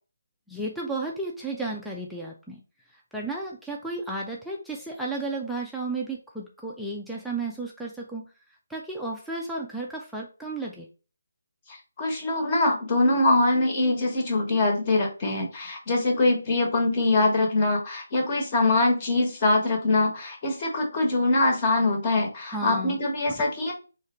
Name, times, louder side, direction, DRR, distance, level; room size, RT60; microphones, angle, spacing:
voice 1, 0.5-2.6 2.9-8.3 8.7-10.9 22.5-23.0 23.3-23.4, right 2 dB, ahead, -4 dB, 0.5 m, -33 dB
voice 2, 11.7-23.7, left 2 dB, 30° left, 2 dB, 1.3 m, -23 dB
3.7 x 3.2 x 4.3 m, 0.34 s
figure-of-eight pair, 160°, 0 cm